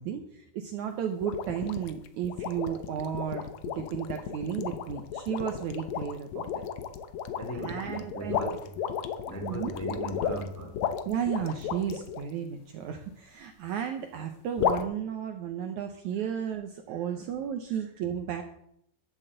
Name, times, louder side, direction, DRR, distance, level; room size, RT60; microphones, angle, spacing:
voice 1, 0.0-3.5 3.7-6.5 7.6-8.6 9.4-9.7 11.1-18.4, right 8 dB, 75° right, 6 dB, 1.8 m, -33 dB
sound 1, 1.2-12.2 14.6-14.8, left 8 dB, 75° left, 1.7 m, -33 dB
voice 2, 7.4-8.7 9.3-10.8 16.2-16.3 16.9-17.0 17.7-17.8, right 1 dB, 10° left, 2 dB, 0.8 m, -38 dB
12.0 x 7.6 x 7.9 m, 0.74 s
omnidirectional pair, 4.4 m